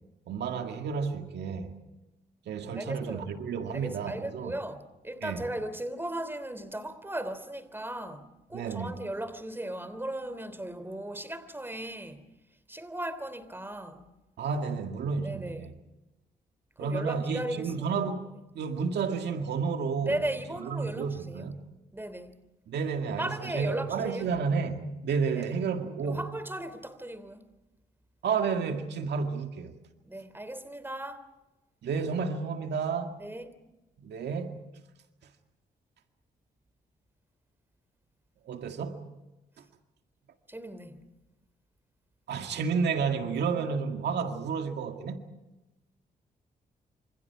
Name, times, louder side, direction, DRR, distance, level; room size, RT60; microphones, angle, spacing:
voice 1, 0.3-1.7 2.5-4.6 5.2-5.5 8.5-8.9 14.4-15.7 16.8-18.3 18.6-20.2 20.6-21.6 22.7-26.3 28.2-29.7 31.8-33.1 34.0-34.6 38.5-39.0 42.3-45.2, right 5 dB, 80° right, 2.0 m, -31 dB
voice 2, 2.7-3.2 3.7-12.2 12.7-14.1 15.2-15.7 16.8-17.9 20.0-21.5 21.9-22.4 23.0-24.3 25.4-25.5 26.0-27.4 30.0-31.2 33.2-33.5 40.5-41.0, right 1 dB, 10° right, 3.2 m, -37 dB
27.5 x 27.0 x 4.8 m
cardioid pair, 60°, 17 cm